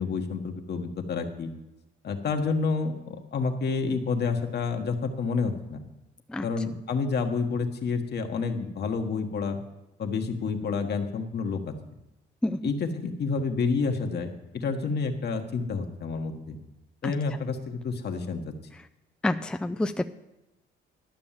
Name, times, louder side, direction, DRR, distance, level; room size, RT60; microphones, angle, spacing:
voice 1, 0.0-1.5 2.0-5.8 6.4-9.6 10.0-11.7 12.6-16.6 17.0-18.5, left 4 dB, 55° left, 5 dB, 1.4 m, -29 dB
voice 2, 19.2-20.0, left 1 dB, 5° left, 7 dB, 0.4 m, -28 dB
12.0 x 6.3 x 7.4 m, 0.97 s
cardioid pair, 90°, 20 cm